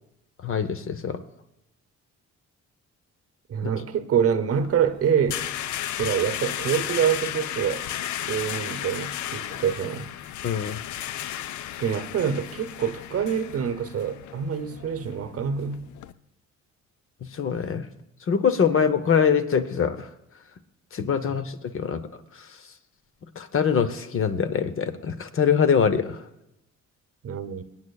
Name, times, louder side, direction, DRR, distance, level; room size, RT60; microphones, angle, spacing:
voice 1, 0.4-1.2 10.4-10.8 17.2-17.9 18.3-20.1 20.9-22.0 23.4-26.2, left 7 dB, 45° left, 0.8 m, -23 dB
voice 2, 3.5-5.5 6.0-7.9 8.3-10.1 11.8-15.9 21.3-21.4 27.2-27.6, right 8 dB, 50° right, 0.8 m, -26 dB
sound 1, 4.5-16.1, left 12 dB, 70° left, 0.5 m, -34 dB
22.0 x 8.7 x 2.3 m
cardioid pair, 90°, 30 cm